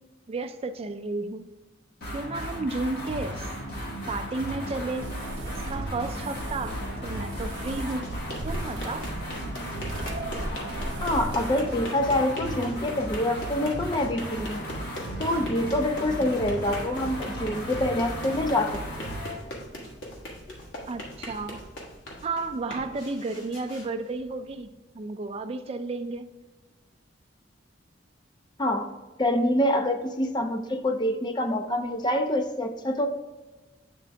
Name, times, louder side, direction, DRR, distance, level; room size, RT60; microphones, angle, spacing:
voice 1, 0.3-1.5 2.1-3.5 4.1-5.1 5.5-8.1 8.4-9.1 20.9-21.6 22.2-24.7 24.9-26.3, right 3 dB, 30° right, 9 dB, 0.4 m, -32 dB
sound 1, 2.0-19.4, equal, 55° left, 1.5 m, -35 dB
sound 2, 5.0-11.8, right 1 dB, 75° right, 0.6 m, -38 dB
sound 3, 7.8-24.6, equal, 75° left, 1.4 m, -41 dB
voice 2, 11.0-14.6 15.2-19.1 28.6-28.9 29.2-33.1, left 1 dB, 25° left, 6 dB, 0.5 m, -26 dB
8.5 x 3.6 x 3.4 m, 1.2 s
head